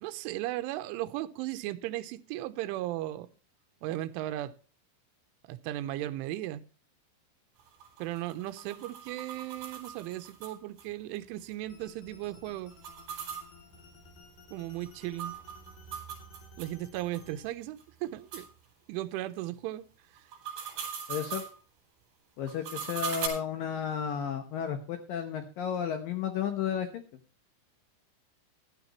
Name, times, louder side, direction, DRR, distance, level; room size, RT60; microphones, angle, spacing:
voice 1, 0.0-3.3 3.8-4.6 5.5-6.6 8.0-12.7 14.5-15.4 16.6-18.5 18.9-19.9 20.1-20.2, right 15 dB, 85° right, 3.2 m, -36 dB
sound 1, 7.6-10.8 11.2-11.3 11.5-11.6 12.7-16.7 17.1-17.2 17.8-17.9 18.3-18.5 20.2-21.5 22.5-23.3, right 7 dB, 65° right, 6.3 m, -40 dB
sound 2, 11.7-17.5, left 4 dB, 50° left, 4.7 m, -56 dB
voice 2, 21.1-21.4 22.4-27.0, left 8 dB, 80° left, 2.0 m, -33 dB
15.0 x 12.0 x 3.0 m
omnidirectional pair, 5.5 m